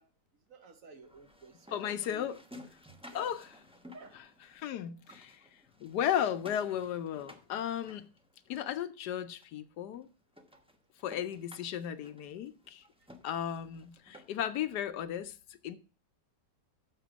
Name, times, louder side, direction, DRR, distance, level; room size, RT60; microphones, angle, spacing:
voice 1, 0.0-2.7 3.1-3.3 3.9-4.2 13.0-13.1, right 4 dB, 55° right, 1.2 m, -54 dB
sound 1, 1.0-4.7 5.0-8.7 9.4-9.5 9.9-10.0 10.3-14.6, left 1 dB, 5° right, 0.5 m, -56 dB
voice 2, 1.7-2.4 3.1-3.4 4.5-5.4 5.8-8.1 8.5-10.1 11.0-12.8 13.2-15.4 15.6-15.8, left 10 dB, 75° left, 1.2 m, -35 dB
6.7 x 6.3 x 6.0 m
omnidirectional pair, 1.9 m